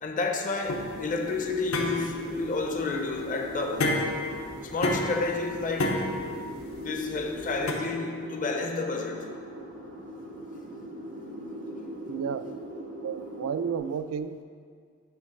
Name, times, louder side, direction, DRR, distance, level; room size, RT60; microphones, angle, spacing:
voice 1, 0.0-4.0 4.6-6.0 6.8-9.3, left 3 dB, 40° left, 3 dB, 0.6 m, -30 dB
sound 1, 0.7-7.7, left 1 dB, 80° left, 0.9 m, -31 dB
sound 2, 0.9-13.8, right 1 dB, 85° right, 2.1 m, -40 dB
voice 2, 12.1-12.5 13.0-14.4, right 7 dB, 70° right, 12 dB, 0.3 m, -32 dB
8.4 x 3.2 x 6.4 m, 2.1 s
head